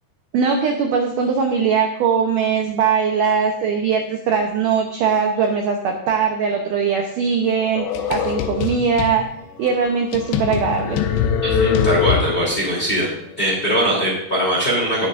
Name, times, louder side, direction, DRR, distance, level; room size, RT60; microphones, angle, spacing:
voice 1, 0.3-9.2 9.6-11.0, right 6 dB, 75° right, 2 dB, 2.0 m, -20 dB
sound 1, 7.8-9.2 9.7-9.8 10.1-12.6, left 7 dB, 80° left, 2.8 m, -21 dB
voice 2, 11.4-13.1 13.4-15.1, equal, 15° left, -5 dB, 2.7 m, -21 dB
18.5 x 6.6 x 2.6 m, 0.77 s
omnidirectional pair, 4.8 m